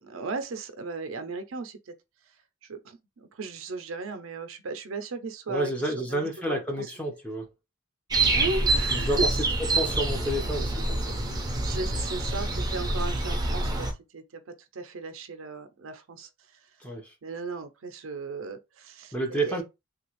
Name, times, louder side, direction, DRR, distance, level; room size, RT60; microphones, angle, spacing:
voice 1, 0.0-1.9 2.6-6.9 8.3-9.8 11.6-13.9 14.1-16.3 16.6-16.7 17.2-19.6, right 3 dB, 90° right, 0.6 m, -36 dB
voice 2, 5.5-7.4 8.9-9.2 9.7-11.2 16.8-17.1 19.1-19.6, right 1 dB, 5° left, 0.8 m, -30 dB
sound 1, 8.1-13.9, right 2 dB, 20° right, 0.6 m, -26 dB
3.2 x 2.4 x 3.0 m
head